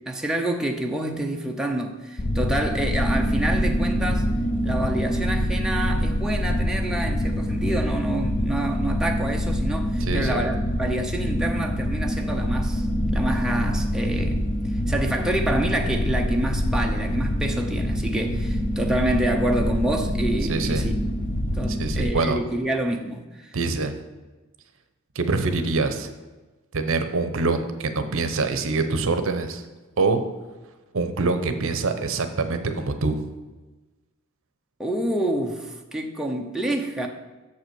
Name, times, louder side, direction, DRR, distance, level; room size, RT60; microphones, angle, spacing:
voice 1, 0.0-4.3 4.6-12.9 13.1-14.4 14.9-20.9 21.5-23.6 34.8-37.1, right 1 dB, 5° right, 0.6 m, -27 dB
sound 1, 2.2-22.1, equal, 40° left, 0.6 m, -25 dB
voice 2, 10.0-10.5 20.5-20.9 21.7-22.4 23.5-24.0 25.1-26.1 26.7-29.6 30.0-30.2 30.9-33.2, right 3 dB, 65° right, 0.7 m, -25 dB
7.0 x 5.5 x 6.1 m
head